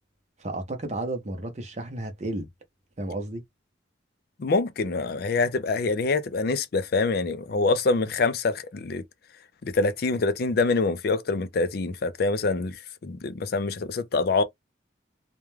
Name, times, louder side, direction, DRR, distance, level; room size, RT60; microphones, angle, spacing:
voice 1, 0.4-2.5 3.0-3.4, right 2 dB, 35° right, 0.7 m, -32 dB
voice 2, 4.4-9.0 9.6-14.4, left 3 dB, 55° left, 0.4 m, -25 dB
2.3 x 2.2 x 3.1 m
head